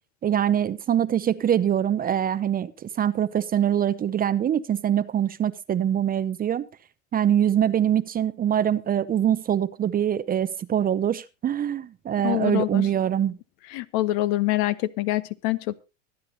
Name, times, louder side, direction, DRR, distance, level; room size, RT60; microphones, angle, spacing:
voice 1, 0.2-6.7 7.1-13.4, right 10 dB, 25° right, 0.7 m, -24 dB
voice 2, 12.2-12.9 13.7-15.8, left 16 dB, 55° left, 1.1 m, -25 dB
24.5 x 9.3 x 2.7 m
hypercardioid pair, 90°, 37 cm